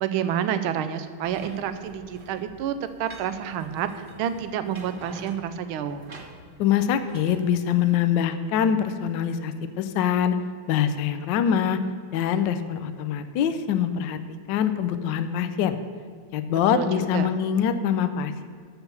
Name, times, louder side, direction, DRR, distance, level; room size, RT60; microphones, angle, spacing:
voice 1, 0.0-6.0 16.7-17.3, right 9 dB, 80° right, 10 dB, 1.4 m, -29 dB
sound 1, 1.2-7.4, right 2 dB, 40° right, 0.7 m, -46 dB
voice 2, 6.6-10.4 10.7-11.8 12.1-14.2 14.5-15.8 16.3-18.4, left 8 dB, 70° left, 10 dB, 1.1 m, -24 dB
8.0 x 6.9 x 7.0 m, 2.1 s
omnidirectional pair, 2.4 m